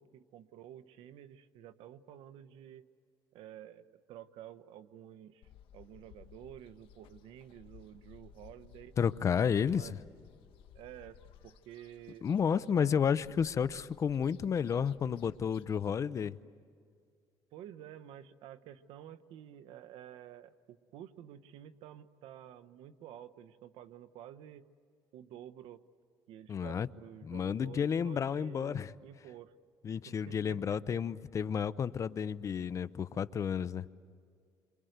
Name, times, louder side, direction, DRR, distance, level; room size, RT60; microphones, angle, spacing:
voice 1, 0.0-2.9 3.3-8.9 9.7-9.9 10.7-13.1 17.5-24.7 25.1-25.8 26.3-29.5 29.9-30.6 30.9-31.0, right 11 dB, 85° right, 13 dB, 1.0 m, -51 dB
sound 1, 5.4-16.0, left 9 dB, 80° left, 1.3 m, -58 dB
voice 2, 9.0-9.9 12.2-16.4 26.5-26.9 27.2-28.9 29.8-33.9, left 7 dB, 35° left, 15 dB, 0.6 m, -31 dB
28.0 x 26.5 x 8.1 m, 2.1 s
cardioid pair, 135°, 9 cm